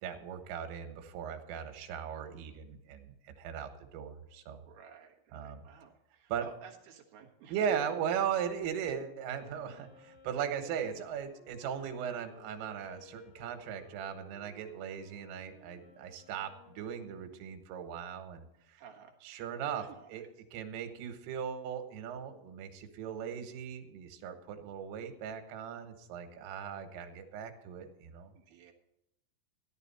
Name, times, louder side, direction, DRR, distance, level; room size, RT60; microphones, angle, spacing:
voice 1, 0.0-4.6 5.3-5.6 6.3-6.5 7.5-18.5 19.2-20.2 20.5-28.3, right 8 dB, 85° right, 6 dB, 3.9 m, -38 dB
voice 2, 4.6-7.9 18.8-19.2 19.7-20.3 28.3-28.7, right 8 dB, 65° right, 1 dB, 2.7 m, -54 dB
Wind instrument woodwind instrument, 9.3-17.6, left 3 dB, 85° left, 4.9 m, -59 dB
14.5 x 11.0 x 4.2 m, 0.84 s
omnidirectional pair, 5.7 m